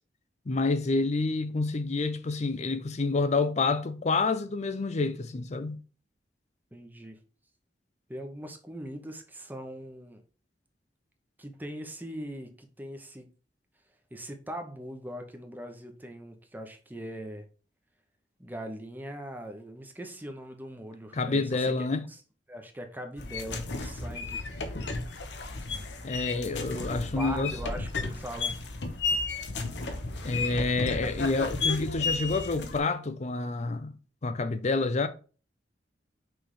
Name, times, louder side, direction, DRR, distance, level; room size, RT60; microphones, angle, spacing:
voice 1, 0.5-5.8 21.1-22.0 26.0-27.6 30.2-33.9 34.2-35.1, left 3 dB, 40° left, 0.6 m, -28 dB
voice 2, 6.7-7.2 8.1-10.2 11.4-13.3 14.1-17.4 18.4-22.2 22.5-24.5 26.7-28.6, right 1 dB, 10° right, 1.0 m, -41 dB
sound 1, 23.2-32.8, left 3 dB, 85° left, 1.1 m, -33 dB
6.1 x 3.5 x 4.9 m
head